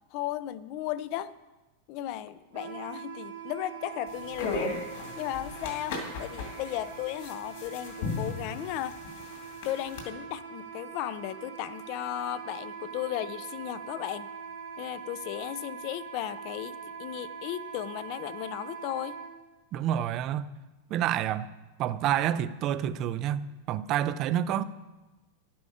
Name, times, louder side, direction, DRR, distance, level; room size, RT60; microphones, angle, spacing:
voice 1, 0.1-1.4 1.9-4.8 5.2-9.0 9.6-14.3 14.8-19.2, left 13 dB, 40° left, 0.4 m, -35 dB
Wind instrument woodwind instrument, 2.5-19.3, right 6 dB, 90° right, 2.7 m, -43 dB
sound 1, 4.1-10.0, left 3 dB, 60° left, 2.3 m, -37 dB
voice 2, 19.7-20.5 20.9-21.5 21.8-24.6, right 11 dB, 30° right, 0.4 m, -28 dB
11.0 x 8.5 x 4.9 m
supercardioid pair, 170°, 0 cm